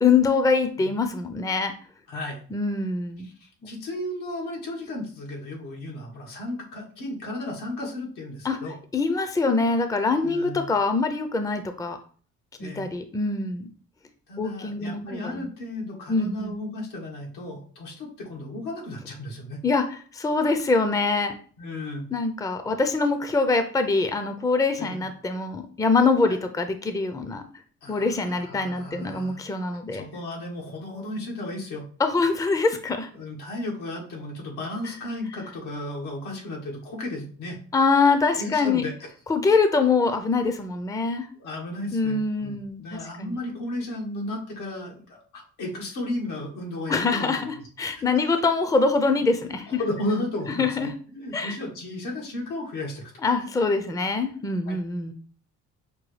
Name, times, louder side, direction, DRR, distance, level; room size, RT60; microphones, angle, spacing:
voice 1, 0.0-1.7 2.5-3.3 3.6-3.7 8.4-8.6 8.9-12.0 12.6-13.7 14.4-15.5 16.1-16.5 19.6-21.3 22.1-27.4 27.9-30.1 32.0-33.1 37.7-38.8 39.3-41.3 41.9-43.4 46.9-49.8 50.6-50.9 51.3-51.6 53.2-55.1, left 4 dB, 10° left, 7 dB, 0.5 m, -24 dB
voice 2, 2.1-2.4 3.4-8.8 10.2-10.7 12.6-12.9 14.3-19.6 21.6-22.1 24.8-25.0 26.3-26.4 27.8-29.4 29.7-31.9 33.1-37.6 38.3-38.9 41.4-47.7 48.0-48.1 49.1-53.1 54.7-54.8, left 1 dB, 85° left, -1 dB, 1.6 m, -34 dB
6.0 x 2.3 x 3.2 m, 0.43 s
cardioid pair, 90°, 30 cm